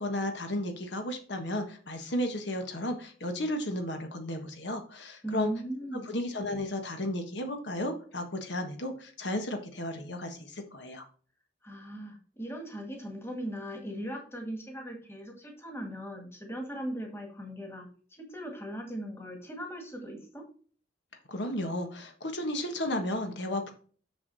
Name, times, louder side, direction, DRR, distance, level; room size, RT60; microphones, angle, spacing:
voice 1, 0.0-5.5 5.9-11.0 21.3-23.7, left 1 dB, 70° left, 5 dB, 1.4 m, -33 dB
voice 2, 5.2-6.1 11.6-17.9 18.2-20.4, right 1 dB, 15° left, 2 dB, 1.8 m, -38 dB
7.0 x 6.5 x 4.1 m, 0.42 s
head